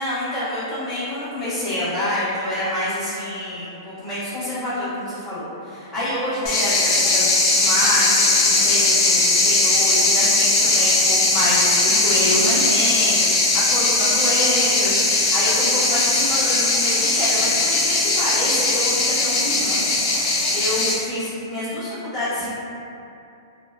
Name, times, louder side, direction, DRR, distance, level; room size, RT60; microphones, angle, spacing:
voice 1, 0.0-22.5, left 1 dB, 10° left, -18 dB, 0.8 m, -27 dB
sound 1, 6.5-20.9, left 2 dB, 30° left, 0.4 m, -19 dB
2.8 x 2.2 x 2.2 m, 2.8 s
hypercardioid pair, 165°, 2 cm